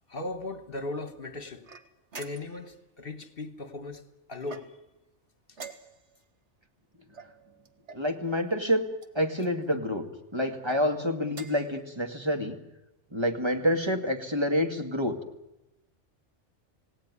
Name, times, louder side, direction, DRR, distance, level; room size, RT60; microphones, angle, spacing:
voice 1, 0.1-1.7 2.1-4.8, left 2 dB, 50° left, 1.6 m, -38 dB
sound 1, 1.6-2.7 4.4-5.0 5.5-6.2 7.1-8.1 9.0-9.5 10.5-10.8 11.3-11.7, right 4 dB, 70° right, 1.9 m, -46 dB
voice 2, 7.9-8.9 9.1-10.1 10.3-12.6 13.1-15.2, equal, 20° right, 2.2 m, -27 dB
28.0 x 18.0 x 9.9 m
omnidirectional pair, 1.2 m